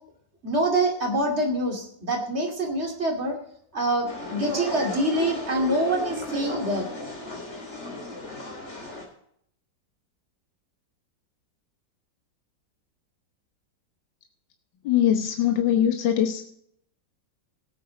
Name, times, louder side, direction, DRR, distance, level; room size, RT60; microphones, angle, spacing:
voice 1, 0.4-3.4 3.7-6.8, right 1 dB, 35° right, 1 dB, 2.8 m, -25 dB
sound 1, 4.1-9.0, left 2 dB, 35° left, 3.7 m, -34 dB
voice 2, 14.8-16.4, left 10 dB, 75° left, 4 dB, 1.7 m, -22 dB
18.0 x 8.7 x 3.9 m, 0.70 s
omnidirectional pair, 2.0 m